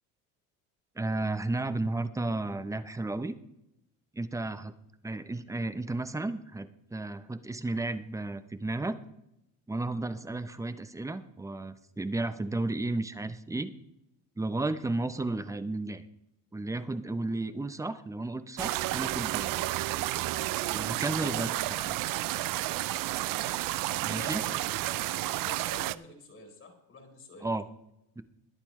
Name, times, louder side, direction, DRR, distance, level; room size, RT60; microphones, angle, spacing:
voice 1, 1.0-3.4 4.1-4.7 5.0-9.0 9.7-13.7 14.4-16.0 16.5-19.5 20.7-21.5 21.8-21.9 24.1-24.4 27.4-27.6 28.2-28.3, right 2 dB, 10° right, 12 dB, 0.8 m, -33 dB
sound 1, 18.6-26.0, right 17 dB, 65° right, 0.6 m, -31 dB
voice 2, 21.2-21.6 23.9-27.5, left 4 dB, 40° left, 3 dB, 4.3 m, -47 dB
22.5 x 8.4 x 3.2 m, 0.82 s
cardioid pair, 120°, 36 cm